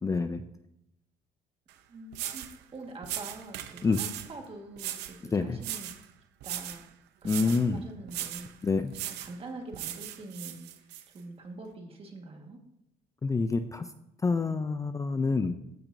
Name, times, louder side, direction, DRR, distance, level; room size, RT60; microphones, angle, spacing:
voice 1, 0.0-0.4 3.8-4.0 5.3-5.6 7.2-7.8 8.6-9.0 13.2-13.9 14.2-15.5, left 4 dB, 20° left, 9 dB, 0.4 m, -27 dB
sound 1, 1.7-1.8 2.1-2.6 3.0-4.3 4.8-5.2 5.6-6.0 6.4-6.8 7.2-7.6 8.1-8.5 8.9-9.3 9.7-11.0, right 12 dB, 80° right, 0.6 m, -38 dB
voice 2, 1.9-5.9 6.4-6.9 7.2-8.7 8.9-10.9 11.1-12.6, right 2 dB, 35° right, 3 dB, 1.6 m, -45 dB
14.5 x 5.9 x 2.6 m, 0.82 s
cardioid pair, 110°, 17 cm